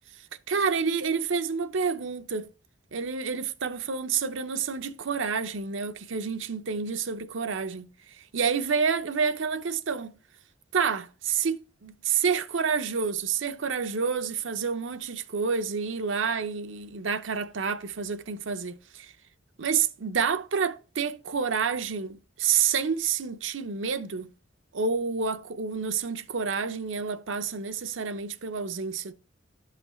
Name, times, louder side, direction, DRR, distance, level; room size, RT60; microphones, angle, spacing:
voice 1, 0.5-2.5 2.9-10.2 10.7-19.1 19.6-24.3 24.7-29.1, right 6 dB, 75° right, 0.7 m, -29 dB
11.5 x 5.8 x 3.1 m
head